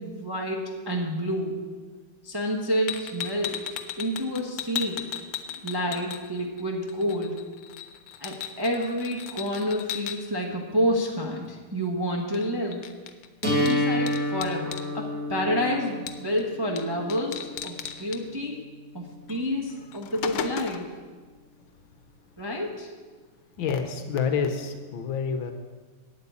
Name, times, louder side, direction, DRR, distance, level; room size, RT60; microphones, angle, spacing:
voice 1, 0.0-1.7 2.2-3.7 4.0-5.1 5.6-7.4 8.2-12.9 13.6-18.6 18.9-21.0 22.4-22.9, equal, 15° right, 0 dB, 0.8 m, -29 dB
sound 1, 2.9-6.6 6.9-10.2 12.3-12.5 12.7-14.9 16.1-16.4 16.8-16.9 17.1-18.2 19.3-19.4 19.8-20.9, left 10 dB, 85° left, 1.7 m, -36 dB
sound 2, 13.4-19.4, left 1 dB, 45° right, 3.7 m, -30 dB
voice 2, 23.6-25.5, left 6 dB, 70° left, 7 dB, 1.6 m, -28 dB
8.8 x 8.5 x 8.5 m, 1.4 s
omnidirectional pair, 2.4 m